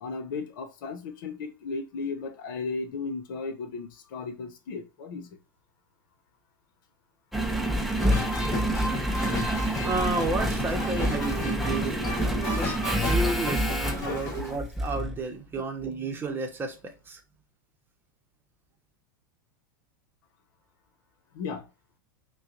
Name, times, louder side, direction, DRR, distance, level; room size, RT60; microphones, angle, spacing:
voice 1, 0.0-5.3 14.0-14.4 15.6-15.7 21.3-21.7, left 4 dB, 70° left, 0.9 m, -35 dB
Engine, 7.3-15.2 15.8-15.9, right 1 dB, ahead, 0.6 m, -28 dB
sound 1, 8.0-14.6, left 2 dB, 25° left, 1.7 m, -34 dB
voice 2, 9.4-17.2, right 3 dB, 20° right, 1.0 m, -32 dB
5.4 x 2.3 x 2.5 m
hypercardioid pair, 115°, 11 cm